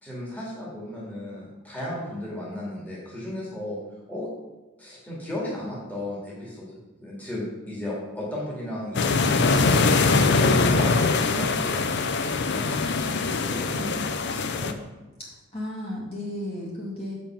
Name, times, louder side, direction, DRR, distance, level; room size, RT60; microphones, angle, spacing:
voice 1, 0.0-3.8 4.1-4.3 4.8-14.8, left 1 dB, 5° left, -6 dB, 2.1 m, -35 dB
sound 1, 8.9-14.7, left 3 dB, 50° left, 0.5 m, -22 dB
voice 2, 15.2-17.1, left 1 dB, 25° left, -6 dB, 2.0 m, -34 dB
7.0 x 5.4 x 5.7 m, 1.2 s
head